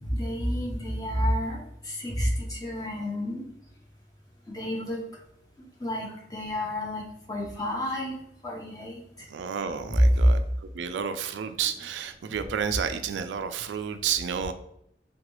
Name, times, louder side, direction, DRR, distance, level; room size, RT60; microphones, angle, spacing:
voice 1, 0.0-3.4 4.5-5.0 5.8-8.1 8.4-9.0, left 1 dB, 20° left, -2 dB, 0.6 m, -31 dB
voice 2, 9.3-14.5, right 7 dB, 80° right, 9 dB, 0.3 m, -31 dB
3.8 x 2.3 x 3.0 m, 0.75 s
head